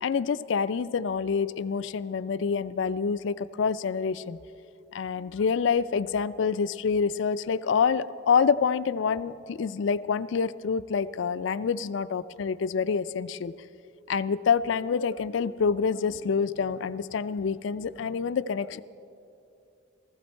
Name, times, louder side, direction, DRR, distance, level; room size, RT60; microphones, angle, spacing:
voice 1, 0.0-4.4 4.9-13.5 14.1-18.8, left 6 dB, 65° left, 16 dB, 0.4 m, -27 dB
16.0 x 15.5 x 4.4 m, 2.6 s
head